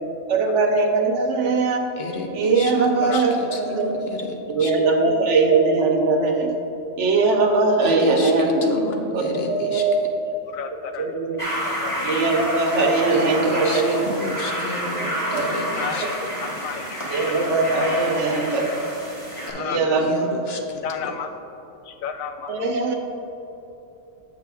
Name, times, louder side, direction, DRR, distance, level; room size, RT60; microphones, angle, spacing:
voice 1, 0.3-1.8 2.3-3.9 4.5-6.5 7.0-8.7 9.1-10.0 11.0-11.4 12.0-14.1 15.0-15.4 16.0-16.1 17.1-18.7 19.6-20.1 22.5-22.9, right 3 dB, 65° right, 3 dB, 1.0 m, -20 dB
voice 2, 2.0-4.7 7.8-9.8 13.1-16.1 19.5-20.6, left 2 dB, 60° left, 2 dB, 0.8 m, -32 dB
voice 3, 10.5-11.1 11.6-12.1 12.8-12.9 15.7-17.0 19.5-19.9 20.8-21.3 21.9-22.8, left 7 dB, 85° left, 8 dB, 1.0 m, -32 dB
sound 1, 11.4-19.5, equal, 25° left, 1.4 m, -29 dB
7.5 x 6.8 x 3.4 m, 3.0 s
omnidirectional pair, 1.4 m